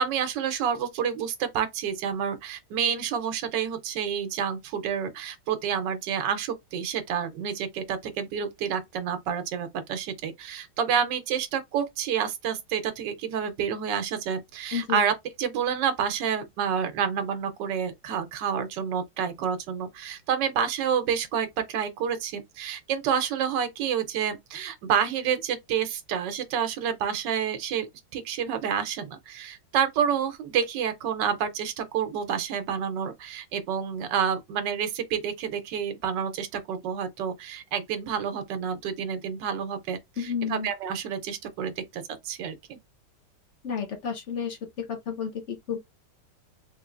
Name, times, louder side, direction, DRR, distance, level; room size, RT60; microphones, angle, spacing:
voice 1, 0.0-15.1 15.4-27.9 28.1-42.8, right 8 dB, 80° right, 1.3 m, -29 dB
voice 2, 40.2-40.7 43.6-45.8, left 7 dB, 55° left, 0.9 m, -31 dB
3.5 x 3.2 x 2.4 m
omnidirectional pair, 1.9 m